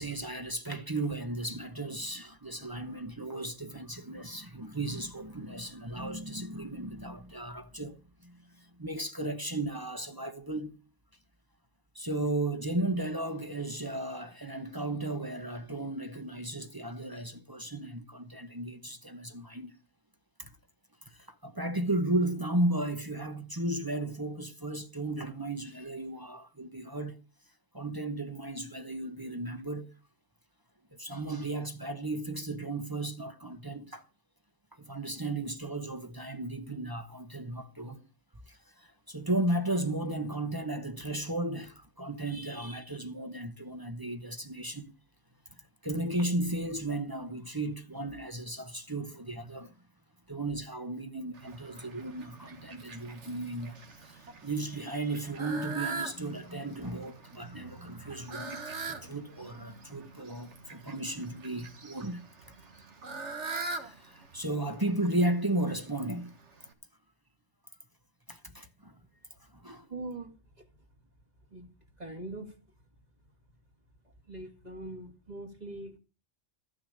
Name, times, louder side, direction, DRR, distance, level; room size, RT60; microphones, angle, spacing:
voice 1, 0.0-10.8 11.9-19.7 20.4-20.5 21.1-27.2 27.7-29.9 30.9-34.1 34.7-38.1 38.5-44.9 45.6-49.7 50.3-62.3 63.5-66.3 68.3-68.9 69.5-69.9, right 1 dB, 20° right, 0.9 m, -35 dB
Fowl, 51.3-66.7, right 4 dB, 85° right, 2.0 m, -43 dB
voice 2, 69.9-70.7 71.5-71.7 72.0-72.6 74.3-76.0, right 2 dB, 35° right, 2.1 m, -42 dB
14.0 x 6.5 x 9.9 m
omnidirectional pair, 1.2 m